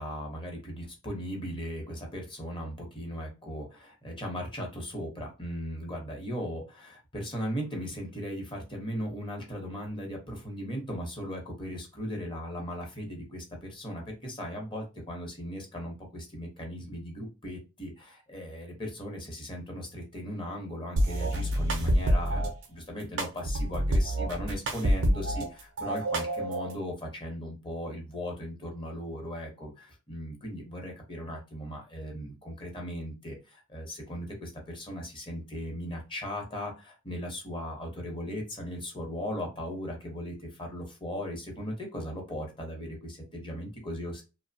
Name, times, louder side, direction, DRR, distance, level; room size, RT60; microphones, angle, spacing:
voice 1, 0.0-44.2, equal, 25° left, 1 dB, 0.8 m, -38 dB
sound 1, 21.0-22.5 23.2-25.5 25.8-26.7, right 1 dB, 60° right, 0.6 m, -27 dB
2.7 x 2.0 x 2.7 m, 0.30 s
head